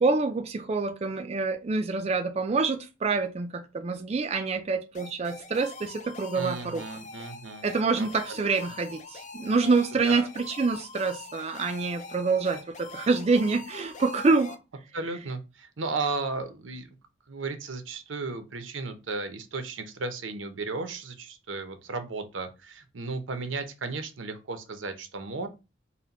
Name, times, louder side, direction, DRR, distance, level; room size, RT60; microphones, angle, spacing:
voice 1, 0.0-6.8 7.6-14.6, right 4 dB, 35° right, 0.4 m, -26 dB
sound 1, 4.9-14.6, left 4 dB, 40° left, 0.5 m, -44 dB
voice 2, 6.3-7.7 8.0-8.5 10.0-10.3 14.9-17.0 17.3-25.5, right 3 dB, 90° right, 0.8 m, -35 dB
4.1 x 2.2 x 4.0 m
head